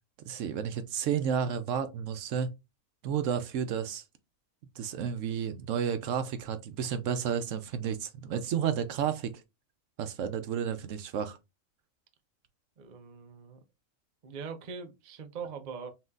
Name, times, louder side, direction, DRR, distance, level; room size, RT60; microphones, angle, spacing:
voice 1, 0.2-2.5 3.0-4.0 4.8-9.4 10.0-11.4, right 8 dB, 75° right, 0.9 m, -31 dB
voice 2, 12.8-13.6 14.2-15.9, right 5 dB, 45° right, 0.6 m, -42 dB
5.7 x 2.8 x 2.3 m
omnidirectional pair, 1.4 m